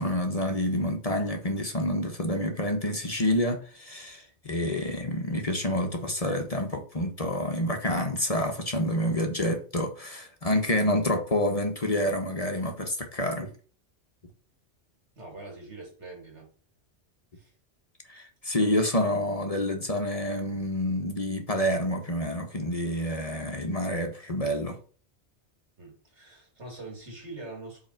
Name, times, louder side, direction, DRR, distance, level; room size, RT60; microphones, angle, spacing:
voice 1, 0.0-13.5 18.1-24.8, left 1 dB, 35° left, 1.0 m, -28 dB
voice 2, 15.2-16.5 17.4-17.5 25.8-27.9, right 2 dB, 85° right, 3.0 m, -43 dB
5.4 x 4.1 x 5.7 m
omnidirectional pair, 1.2 m